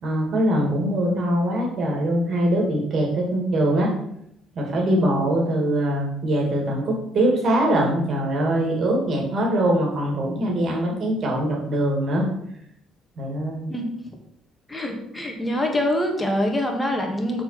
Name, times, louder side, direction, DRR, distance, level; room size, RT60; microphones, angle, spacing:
voice 1, 0.0-3.9 4.5-12.3 13.2-13.7, right 1 dB, 55° right, 0 dB, 2.8 m, -22 dB
voice 2, 14.7-17.4, left 1 dB, 15° left, 1 dB, 2.1 m, -25 dB
6.4 x 4.8 x 6.0 m, 0.75 s
hypercardioid pair, 50°, 0 cm